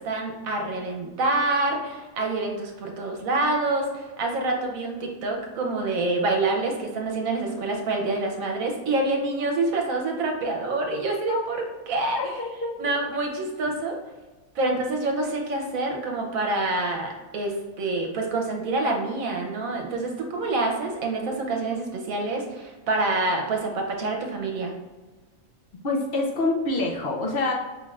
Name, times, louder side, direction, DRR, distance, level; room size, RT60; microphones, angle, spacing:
voice 1, 0.0-12.3 12.8-14.0 14.5-24.7, right 2 dB, 70° right, 1 dB, 1.2 m, -27 dB
voice 2, 12.2-12.7 25.8-27.5, left 2 dB, 50° left, -2 dB, 0.7 m, -26 dB
5.1 x 2.5 x 3.2 m, 1.2 s
omnidirectional pair, 1.5 m